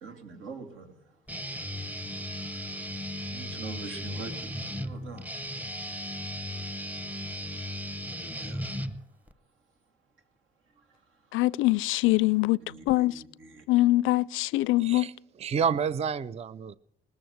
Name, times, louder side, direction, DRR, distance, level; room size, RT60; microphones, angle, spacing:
voice 1, 0.0-0.9 3.3-5.3 8.4-8.7 12.7-13.6, right 4 dB, 80° right, 2.8 m, -43 dB
Guitar, 1.3-9.3, equal, 10° right, 0.9 m, -36 dB
voice 2, 11.3-12.6 12.9-13.1 13.7-15.1, left 18 dB, 90° left, 0.4 m, -23 dB
voice 3, 14.8-16.8, right 6 dB, 30° right, 0.4 m, -30 dB
20.0 x 7.1 x 7.9 m
cardioid pair, 90°, 20 cm